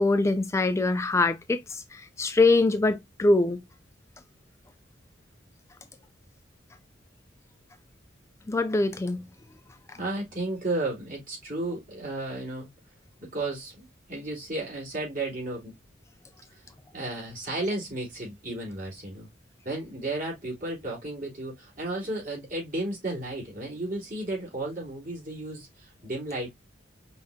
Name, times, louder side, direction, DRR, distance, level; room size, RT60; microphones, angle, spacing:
voice 1, 0.0-3.6 8.5-9.2 9.9-10.0, left 2 dB, 15° left, 0.3 m, -23 dB
voice 2, 10.0-12.7 13.2-15.7 16.5-19.3 19.6-26.5, right 2 dB, 45° right, 3.2 m, -33 dB
5.3 x 3.5 x 2.7 m
head